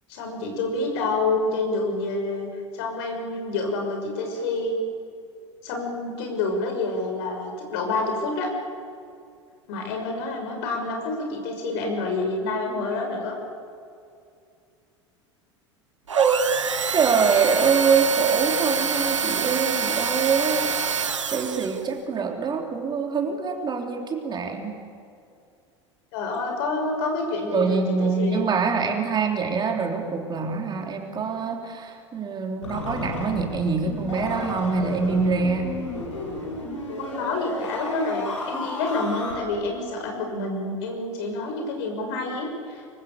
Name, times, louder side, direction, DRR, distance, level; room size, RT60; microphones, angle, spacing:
voice 1, 0.1-4.8 5.6-8.5 9.7-13.4 26.1-28.5 36.8-42.9, left 3 dB, 60° left, 3 dB, 6.3 m, -28 dB
voice 2, 16.1-16.5 16.9-20.7 21.3-24.7 27.5-35.7, right 5 dB, 30° right, 2 dB, 3.4 m, -24 dB
sound 1, 16.1-21.9, right 6 dB, 80° right, 1.0 m, -26 dB
sound 2, 32.6-39.3, left 2 dB, 80° left, 5.7 m, -33 dB
25.5 x 24.0 x 7.0 m, 2.4 s
figure-of-eight pair, 75°, 16 cm